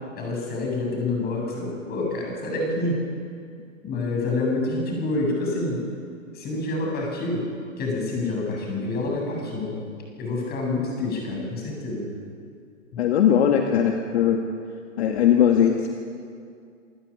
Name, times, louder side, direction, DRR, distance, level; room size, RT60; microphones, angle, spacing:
voice 1, 0.2-3.0 3.8-5.8 6.3-7.5 7.8-9.8 10.2-12.1 12.9-13.0, left 2 dB, 25° left, 0 dB, 7.7 m, -27 dB
voice 2, 13.0-14.4 15.0-15.9, left 9 dB, 55° left, 3 dB, 2.0 m, -19 dB
27.5 x 14.5 x 8.8 m, 2.3 s
hypercardioid pair, 130°, 39 cm